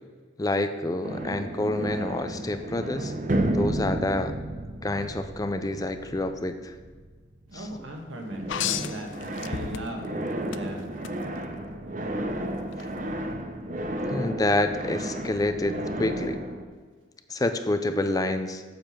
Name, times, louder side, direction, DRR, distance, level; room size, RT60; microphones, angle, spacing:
voice 1, 0.4-3.1 3.5-4.3 4.8-6.7 7.5-7.7 14.0-16.4 17.3-18.8, left 2 dB, 20° left, 8 dB, 0.4 m, -28 dB
sound 1, 1.0-8.0 8.3-16.6, right 1 dB, 40° right, 0.8 m, -32 dB
voice 2, 7.5-10.1 10.5-10.9, right 1 dB, 85° right, 2 dB, 1.5 m, -38 dB
sound 2, 8.5-10.1 10.5-11.1 12.7-12.8, left 10 dB, 75° left, 0.4 m, -32 dB
7.7 x 6.9 x 5.9 m, 1.5 s
head